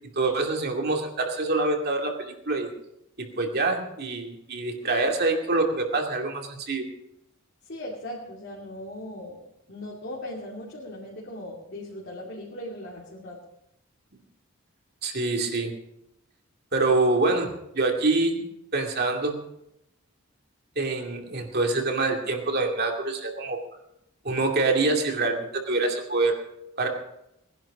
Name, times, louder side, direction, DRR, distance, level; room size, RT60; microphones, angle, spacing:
voice 1, 0.2-2.7 3.2-6.9 15.0-15.7 16.7-17.5 17.7-18.5 18.7-19.4 20.8-23.6 24.2-26.4 26.8-26.9, right 3 dB, 50° right, 2 dB, 2.5 m, -25 dB
voice 2, 7.7-9.4 9.7-13.4, left 1 dB, 55° left, -5 dB, 2.7 m, -38 dB
19.5 x 11.0 x 5.0 m, 0.82 s
head